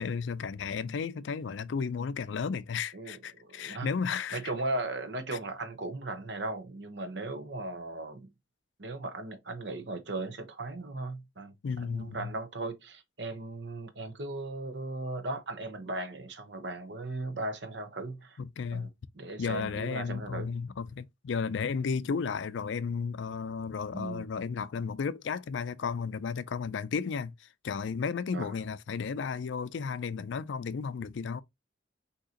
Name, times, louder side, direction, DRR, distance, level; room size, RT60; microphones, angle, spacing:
voice 1, 0.0-4.4 5.3-5.4 11.6-12.3 18.4-18.9 19.4-31.4, left 5 dB, 70° left, 0.4 m, -33 dB
voice 2, 2.9-3.9 4.3-8.3 8.8-18.4 18.7-20.5 23.9-24.3 28.3-28.5, right 2 dB, 60° right, 0.9 m, -37 dB
6.3 x 2.9 x 2.8 m
head